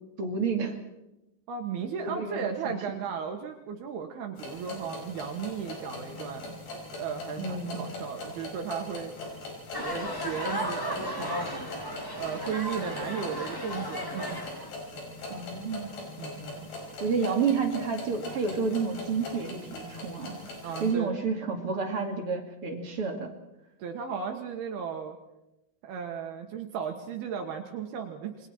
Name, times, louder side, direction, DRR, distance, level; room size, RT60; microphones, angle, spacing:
voice 1, 0.2-0.8 2.0-2.8 7.4-7.8 15.3-16.0 17.0-20.4 20.8-23.3, right 5 dB, 40° right, 4 dB, 2.4 m, -30 dB
voice 2, 1.5-6.6 6.9-9.1 9.8-11.5 12.2-14.5 15.3-15.4 16.2-16.7 20.6-21.1 23.8-25.2 25.8-28.5, right 7 dB, 75° right, 3 dB, 3.2 m, -35 dB
sound 1, 4.4-20.9, left 2 dB, 85° left, 7.7 m, -41 dB
sound 2, 9.7-14.7, equal, 10° left, 1.5 m, -35 dB
28.0 x 22.5 x 4.4 m, 0.93 s
omnidirectional pair, 4.7 m